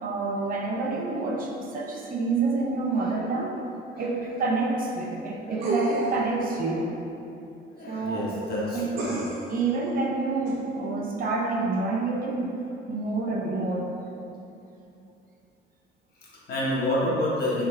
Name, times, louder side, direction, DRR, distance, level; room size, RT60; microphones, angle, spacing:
voice 1, 0.0-3.6 4.0-6.9 7.9-8.3 8.7-8.9 9.5-12.5 12.9-13.9, right 3 dB, 45° right, -1 dB, 0.6 m, -28 dB
sound 1, 5.6-6.3 9.0-9.6 10.5-10.6, right 1 dB, 75° right, 0.9 m, -29 dB
voice 2, 7.7-9.1 16.2-17.7, left 1 dB, 50° left, -6 dB, 1.1 m, -28 dB
4.2 x 3.6 x 3.4 m, 2.7 s
cardioid pair, 140°, 21 cm